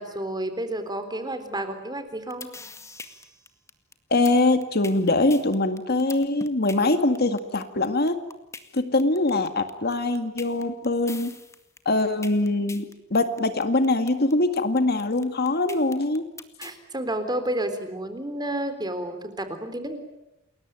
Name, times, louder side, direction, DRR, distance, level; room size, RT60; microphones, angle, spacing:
voice 1, 0.0-2.5 16.6-20.0, right 1 dB, 20° right, 9 dB, 3.7 m, -30 dB
sound 1, 2.1-16.8, left 3 dB, 15° left, 2.0 m, -42 dB
voice 2, 4.1-8.2 8.7-11.3 11.9-16.3, left 2 dB, 50° left, 9 dB, 2.0 m, -23 dB
29.5 x 21.5 x 9.1 m, 0.87 s
head